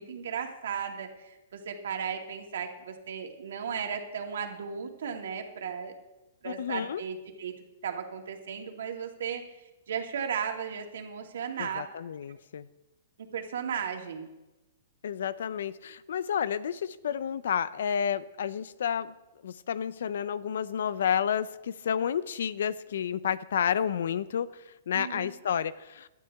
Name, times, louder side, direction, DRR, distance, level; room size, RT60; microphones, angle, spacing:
voice 1, 0.0-5.9 6.4-7.5 7.8-9.4 9.9-11.8 13.3-14.3 24.9-25.3, right 7 dB, 75° right, 3 dB, 2.3 m, -35 dB
voice 2, 6.4-7.0 11.6-12.7 15.0-19.1 19.4-24.5 24.9-26.1, left 8 dB, 70° left, 17 dB, 0.6 m, -30 dB
17.5 x 12.0 x 3.6 m, 1.0 s
hypercardioid pair, 155°, 0 cm